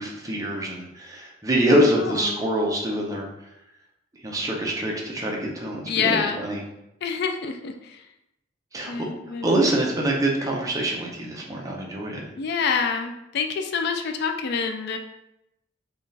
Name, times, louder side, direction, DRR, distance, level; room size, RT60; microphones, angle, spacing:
voice 1, 0.0-3.3 4.2-6.6 8.7-9.0 9.4-12.2, right 1 dB, 20° right, -2 dB, 0.7 m, -25 dB
voice 2, 1.7-2.5 5.9-6.4 7.0-8.0 8.8-9.6 12.3-15.0, left 5 dB, 60° left, 5 dB, 0.4 m, -27 dB
5.1 x 2.5 x 3.3 m, 0.86 s
head